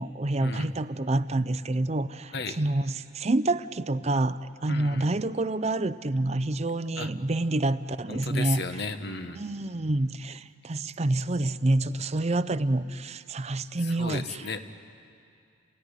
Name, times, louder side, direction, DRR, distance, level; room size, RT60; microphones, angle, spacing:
voice 1, 0.0-8.6 9.3-14.2, right 2 dB, 35° right, 14 dB, 0.6 m, -27 dB
voice 2, 4.7-5.1 7.0-7.1 8.1-9.4 13.8-14.6, left 3 dB, 60° left, 8 dB, 1.3 m, -34 dB
30.0 x 17.5 x 9.9 m, 2.4 s
head